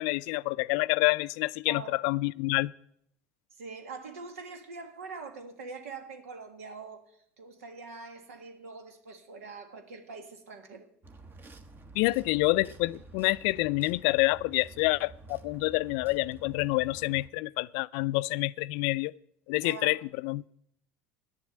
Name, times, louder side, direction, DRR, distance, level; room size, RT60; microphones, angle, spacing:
voice 1, 0.0-2.7 11.9-19.1 19.5-20.5, left 21 dB, 65° left, 0.3 m, -28 dB
voice 2, 3.5-10.9 19.6-20.0, right 4 dB, 85° right, 1.6 m, -44 dB
sound 1, 11.0-17.3, right 2 dB, 25° right, 1.1 m, -50 dB
10.5 x 7.3 x 7.9 m
hypercardioid pair, 90°, 7 cm